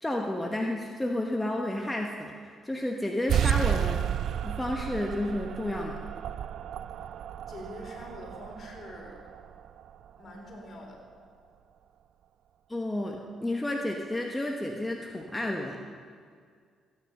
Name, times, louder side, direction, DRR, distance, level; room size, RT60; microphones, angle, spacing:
voice 1, 0.0-4.0 4.4-6.0 12.7-15.8, left 1 dB, 10° left, 1 dB, 1.0 m, -31 dB
sound 1, 3.3-10.4, right 10 dB, 70° right, 0.3 m, -32 dB
voice 2, 7.5-9.2 10.2-11.0, left 1 dB, 50° left, -1 dB, 3.8 m, -44 dB
15.0 x 9.4 x 5.4 m, 2.1 s
cardioid pair, 80°, 0 cm